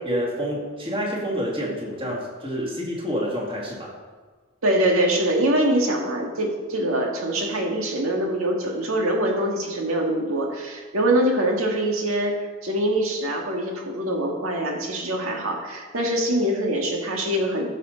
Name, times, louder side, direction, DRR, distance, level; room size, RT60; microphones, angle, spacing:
voice 1, 0.1-3.9, equal, 25° right, -3 dB, 2.3 m, -28 dB
voice 2, 4.6-17.7, right 1 dB, 90° right, 1 dB, 1.9 m, -24 dB
15.0 x 6.6 x 4.0 m, 1.4 s
head